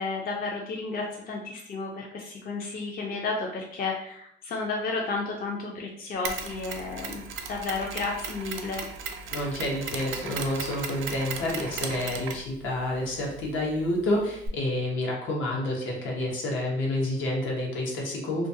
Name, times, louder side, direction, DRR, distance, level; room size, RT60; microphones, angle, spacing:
voice 1, 0.0-7.2 7.5-8.8, left 3 dB, 50° left, -1 dB, 0.5 m, -32 dB
Mechanisms, 6.2-14.5, right 5 dB, 80° right, 0.4 m, -37 dB
voice 2, 9.3-18.5, left 1 dB, 80° left, -2 dB, 0.8 m, -29 dB
2.4 x 2.3 x 2.6 m, 0.71 s
cardioid pair, 90°, 20 cm